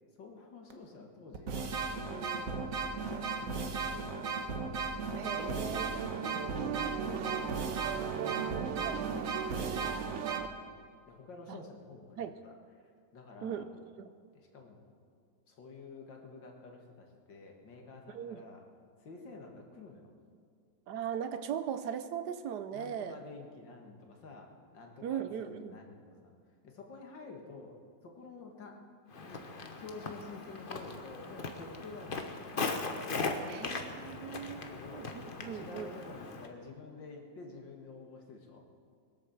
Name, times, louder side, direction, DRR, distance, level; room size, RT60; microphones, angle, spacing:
voice 1, 0.2-2.6 3.4-4.4 5.4-10.6 11.1-12.5 13.1-13.6 14.3-14.9 15.5-18.6 19.0-20.1 22.7-26.3 26.6-27.8 28.0-28.8 29.2-32.9 34.1-35.1 35.5-38.6, left 3 dB, 75° left, 2 dB, 2.5 m, -50 dB
sound 1, 0.7-0.8 1.3-10.4, right 4 dB, 50° right, 1.5 m, -36 dB
voice 2, 5.2-5.8 8.8-9.0 11.5-11.6 12.2-12.3 13.4-14.1 18.1-18.4 20.9-23.2 25.0-25.8 33.5-34.6 34.9-35.9, right 8 dB, 70° right, 11 dB, 1.1 m, -39 dB
sound 2, 5.4-10.5, right 11 dB, 85° right, 1.3 m, -38 dB
Walk footsteps, 29.1-36.5, left 3 dB, 35° left, 1.0 m, -39 dB
22.0 x 8.4 x 7.3 m, 2.2 s
omnidirectional pair, 2.0 m